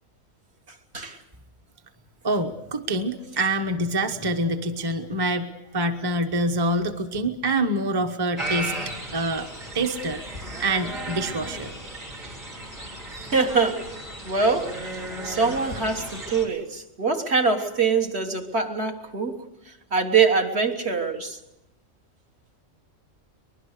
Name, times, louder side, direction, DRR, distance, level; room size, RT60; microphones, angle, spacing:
voice 1, 2.2-8.8 9.1-9.5 9.7-11.7, right 1 dB, 20° right, 1.0 m, -26 dB
sound 1, 8.4-16.4, right 1 dB, 90° right, 4.4 m, -35 dB
voice 2, 13.3-13.9 14.3-14.8 15.2-19.5 19.9-21.4, right 4 dB, 55° right, 1.8 m, -24 dB
24.0 x 20.5 x 6.6 m
omnidirectional pair, 1.3 m